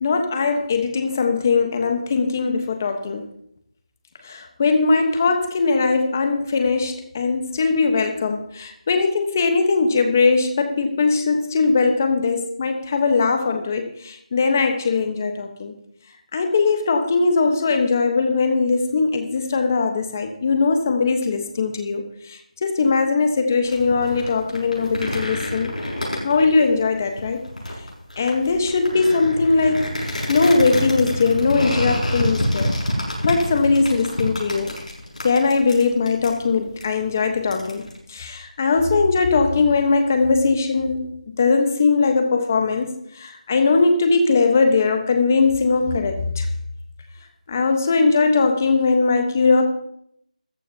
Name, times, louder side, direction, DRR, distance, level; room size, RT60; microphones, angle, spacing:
voice 1, 0.0-3.2 4.2-15.7 16.3-25.7 26.2-27.4 28.2-30.0 30.3-32.7 33.2-34.7 35.2-46.5 47.5-49.6, left 4 dB, 20° left, 6 dB, 1.1 m, -20 dB
sound 1, 23.6-38.0, left 1 dB, 70° left, 6.2 m, -28 dB
15.0 x 14.0 x 2.8 m, 0.71 s
figure-of-eight pair, 175°, 4 cm